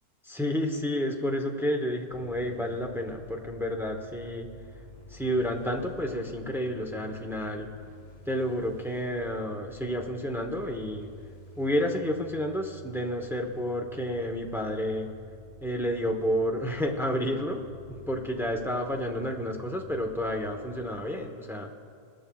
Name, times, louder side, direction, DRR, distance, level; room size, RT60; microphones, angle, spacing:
voice 1, 0.2-4.5 5.1-7.7 8.2-11.1 11.6-15.1 15.6-17.6 17.9-21.7, equal, ahead, 2 dB, 0.5 m, -30 dB
sound 1, 2.1-20.9, left 1 dB, 50° left, 2.5 m, -50 dB
21.5 x 12.5 x 2.3 m, 2.2 s
omnidirectional pair, 1.6 m